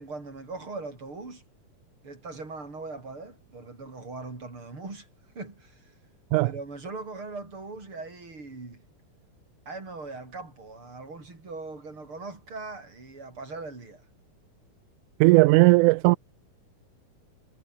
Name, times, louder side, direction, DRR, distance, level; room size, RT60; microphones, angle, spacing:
voice 1, 0.0-1.4 2.0-5.1 5.3-5.9 6.4-8.8 9.7-14.0, right 3 dB, 35° right, 6.8 m, -40 dB
voice 2, 15.2-16.2, right 22 dB, 85° right, 1.7 m, -17 dB
omnidirectional pair, 4.0 m